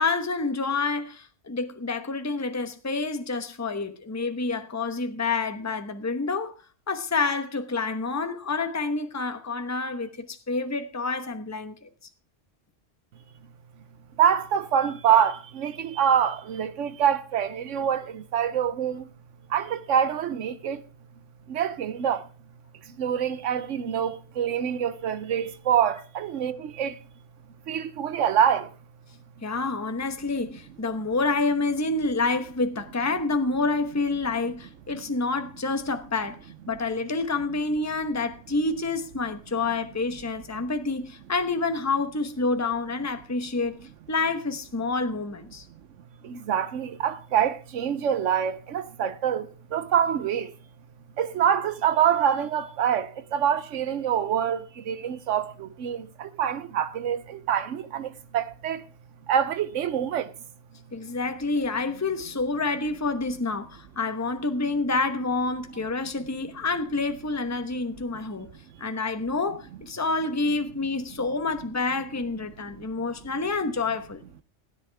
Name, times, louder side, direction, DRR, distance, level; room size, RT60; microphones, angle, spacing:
voice 1, 0.0-6.5 6.9-11.9 29.4-36.4 36.7-43.8 44.1-45.6 60.9-68.5 68.8-74.2, left 3 dB, 15° left, 0.9 m, -28 dB
voice 2, 14.2-18.0 18.3-19.0 19.5-20.8 21.5-22.2 23.0-26.9 27.7-28.7 46.3-49.5 49.7-50.5 51.2-53.1 53.3-55.5 55.8-58.1 58.3-58.8 59.3-60.3, right 9 dB, 85° right, 1.1 m, -25 dB
16.5 x 10.0 x 3.4 m
omnidirectional pair, 1.2 m